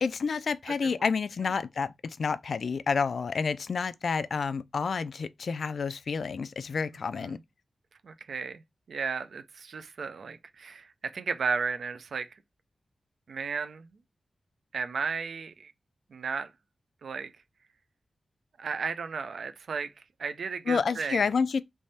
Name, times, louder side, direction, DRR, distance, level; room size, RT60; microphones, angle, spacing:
voice 1, 0.0-7.4 20.7-21.6, left 5 dB, 70° left, 0.3 m, -29 dB
voice 2, 8.0-8.6 8.9-12.4 13.3-13.9 14.7-15.7 16.1-16.5 17.0-17.3 18.6-19.9 20.2-21.3, right 5 dB, 80° right, 0.4 m, -34 dB
3.4 x 3.2 x 4.0 m
wide cardioid pair, 100°, 0 cm